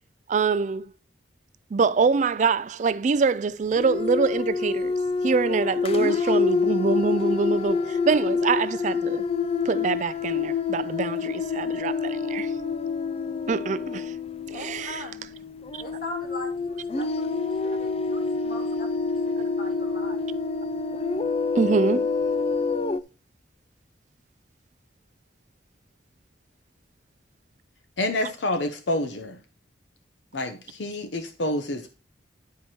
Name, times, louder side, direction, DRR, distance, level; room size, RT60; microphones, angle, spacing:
voice 1, 0.3-0.9 1.7-5.0 5.2-9.2 9.7-12.5 13.5-14.1 14.5-15.0 21.6-22.1, right 5 dB, 40° right, 0.3 m, -24 dB
sound 1, 3.7-23.0, left 4 dB, 30° left, 0.4 m, -27 dB
voice 2, 14.5-15.3 15.8-20.3, left 1 dB, 50° left, 2.7 m, -41 dB
voice 3, 28.0-29.4 30.3-31.9, left 1 dB, 75° left, 1.0 m, -28 dB
10.5 x 4.8 x 4.4 m
head